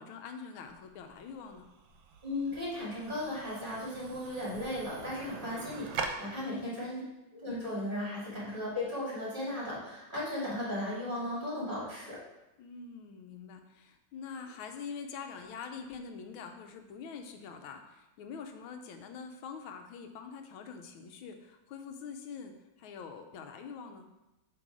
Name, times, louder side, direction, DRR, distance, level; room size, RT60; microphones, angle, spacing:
voice 1, 0.0-1.7 6.4-6.9 12.6-24.1, left 6 dB, 90° left, 6 dB, 1.5 m, -45 dB
sound 1, 0.7-6.1, right 5 dB, 75° right, 1.5 m, -43 dB
voice 2, 2.2-7.0 7.3-12.2, left 1 dB, 25° right, -8 dB, 2.8 m, -36 dB
7.7 x 3.5 x 4.8 m, 0.98 s
omnidirectional pair, 2.2 m